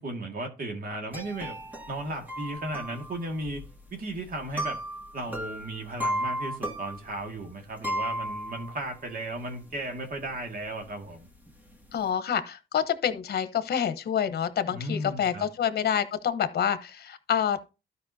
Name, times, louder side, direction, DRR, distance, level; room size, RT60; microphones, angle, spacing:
voice 1, 0.0-1.6 1.9-3.6 3.9-4.8 5.1-11.3 14.7-15.5, right 1 dB, 45° right, 2.0 m, -35 dB
sound 1, 1.1-9.0 9.4-9.5 9.7-10.4 10.6-12.1, equal, 10° right, 1.7 m, -35 dB
voice 2, 11.9-17.6, left 8 dB, 55° left, 1.0 m, -27 dB
13.0 x 5.3 x 2.8 m
cardioid pair, 90°, 20 cm